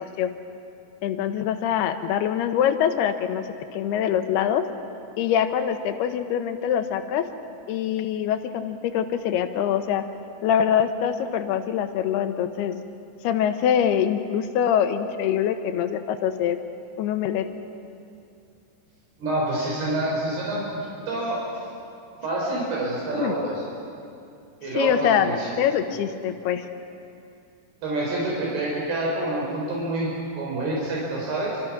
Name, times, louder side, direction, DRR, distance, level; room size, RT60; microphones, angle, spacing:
voice 1, 1.0-3.4 3.7-4.7 5.2-7.3 7.7-10.0 10.4-12.8 13.2-16.6 17.0-17.5 23.2-23.3 24.8-25.3 25.6-26.7, left 9 dB, 80° left, 8 dB, 3.1 m, -24 dB
voice 2, 19.2-21.4 22.2-23.5 24.6-25.5 27.8-31.6, right 2 dB, 75° right, -4 dB, 6.1 m, -27 dB
27.0 x 26.5 x 6.0 m, 2.5 s
omnidirectional pair, 4.6 m